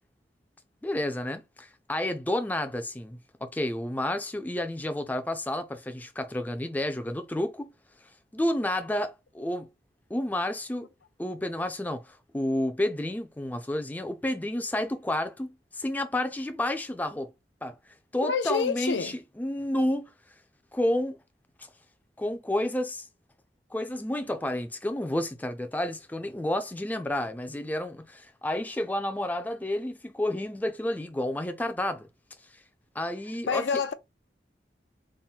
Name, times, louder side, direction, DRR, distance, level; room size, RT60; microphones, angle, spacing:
voice 1, 0.8-7.7 8.0-9.7 10.1-10.9 11.2-17.3 17.6-17.8 18.1-20.1 20.7-21.2 21.6-21.7 22.2-23.1 23.7-32.1 32.5-32.6 32.9-33.6, left 1 dB, 10° left, 0.4 m, -30 dB
voice 2, 18.2-19.2 33.5-33.9, left 5 dB, 80° left, 0.5 m, -27 dB
3.7 x 2.1 x 4.0 m
head